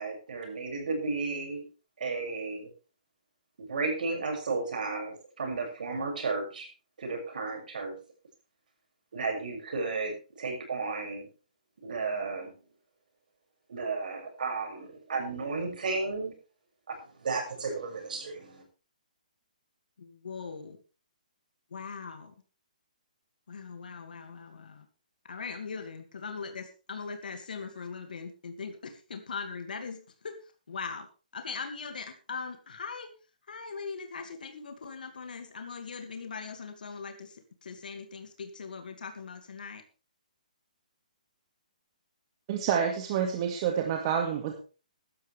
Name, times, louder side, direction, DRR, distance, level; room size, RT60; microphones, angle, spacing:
voice 1, 0.0-1.6 2.0-2.7 3.6-6.7 7.0-8.0 9.1-11.3 11.8-12.5 13.7-16.3 16.9-18.6, right 3 dB, 70° right, 3 dB, 6.8 m, -33 dB
voice 2, 20.0-20.8 21.7-22.3 23.5-24.9 25.3-30.4 30.7-31.1 31.3-33.1 33.5-39.8, left 5 dB, 75° left, 5 dB, 2.4 m, -40 dB
voice 3, 42.5-44.5, right 8 dB, 35° right, 3 dB, 2.1 m, -28 dB
15.5 x 12.0 x 3.5 m, 0.34 s
hypercardioid pair, 155°, 5 cm